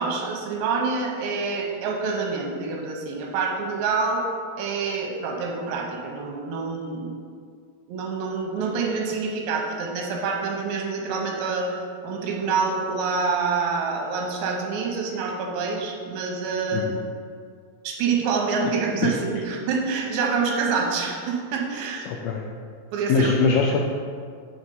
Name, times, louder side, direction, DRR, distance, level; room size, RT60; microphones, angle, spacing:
voice 1, 0.0-4.2 4.6-7.1 7.9-16.9 17.8-22.1 22.9-23.4, right 4 dB, 90° right, 0 dB, 3.1 m, -27 dB
voice 2, 22.1-22.4 23.1-23.8, left 5 dB, 85° left, 0 dB, 2.2 m, -22 dB
7.9 x 3.4 x 5.4 m, 2.2 s
omnidirectional pair, 4.9 m